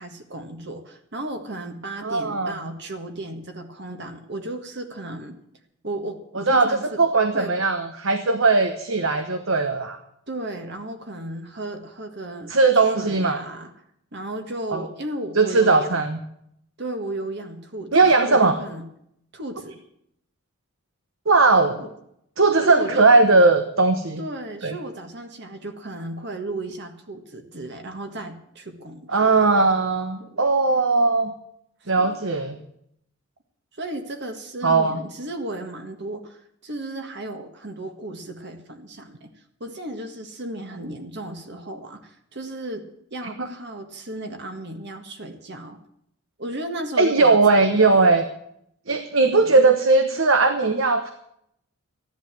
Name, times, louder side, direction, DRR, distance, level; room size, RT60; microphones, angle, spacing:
voice 1, 0.0-5.4 5.8-6.8 7.3-7.5 10.3-12.5 12.9-13.7 14.1-16.0 16.8-18.8 19.3-19.8 21.8-21.9 22.6-23.0 24.2-29.3 30.2-30.4 31.8-32.2 33.8-39.3 39.6-42.8 43.1-45.8 46.4-48.0 49.4-49.5, right 1 dB, 55° right, 6 dB, 1.7 m, -34 dB
voice 2, 2.0-2.5 6.5-10.0 12.5-13.4 14.7-14.8 15.4-16.2 17.9-18.6 21.3-21.8 22.4-24.2 24.6-24.8 29.1-31.3 31.9-32.6 34.6-35.0 43.4-43.5 47.0-48.2 48.9-51.1, right 3 dB, 70° right, 8 dB, 1.2 m, -18 dB
14.0 x 11.5 x 7.5 m, 0.73 s
head